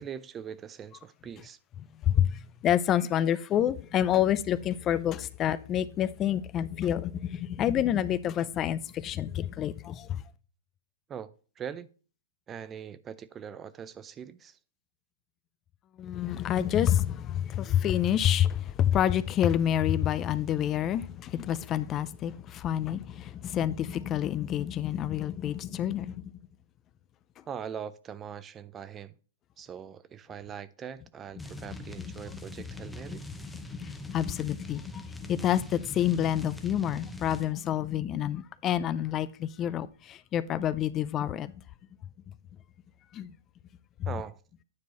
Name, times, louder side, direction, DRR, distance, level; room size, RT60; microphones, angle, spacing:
voice 1, 0.0-1.6 11.1-11.9 12.5-14.6 27.5-29.2 29.6-33.2 44.0-44.4, right 8 dB, 25° right, 0.5 m, -41 dB
voice 2, 1.9-10.2 16.0-26.4 27.4-27.5 33.5-41.5 43.1-43.3 44.0-44.1, left 10 dB, 30° left, 0.4 m, -28 dB
sound 1, 31.4-37.5, left 2 dB, 5° left, 0.8 m, -42 dB
9.5 x 4.6 x 4.1 m
hypercardioid pair, 120°, 0 cm